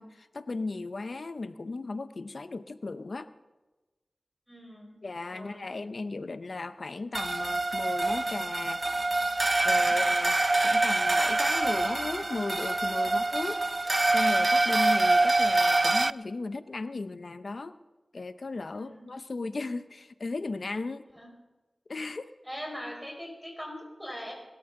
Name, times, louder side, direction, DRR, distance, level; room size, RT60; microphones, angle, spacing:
voice 1, 0.0-3.3 5.0-8.8 9.6-10.3 10.6-13.6 14.1-17.8 18.1-21.0 21.9-22.3, left 3 dB, 65° left, 12 dB, 0.7 m, -36 dB
voice 2, 4.5-5.0 5.3-5.8 9.7-10.0 13.0-13.2 18.7-19.1 21.2-21.3 22.4-24.3, equal, 5° right, 0 dB, 4.9 m, -41 dB
sound 1, 7.1-16.1, right 2 dB, 40° right, 0.4 m, -25 dB
22.0 x 13.5 x 3.8 m, 1.1 s
wide cardioid pair, 60°, 0 cm